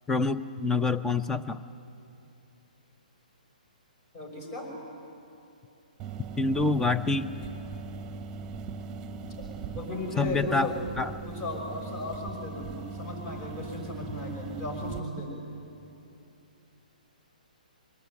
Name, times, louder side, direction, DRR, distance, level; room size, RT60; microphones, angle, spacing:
voice 1, 0.1-1.6 6.4-7.3 10.2-10.7 11.0-11.1, left 3 dB, 10° left, 11 dB, 0.6 m, -26 dB
voice 2, 4.1-4.7 9.4-9.5 9.7-10.7 11.2-15.4, left 1 dB, 30° left, 2 dB, 6.3 m, -36 dB
sound 1, 6.0-15.0, right 4 dB, 20° right, 1.1 m, -40 dB
23.5 x 19.5 x 9.3 m, 2.9 s
figure-of-eight pair, 130°, 5 cm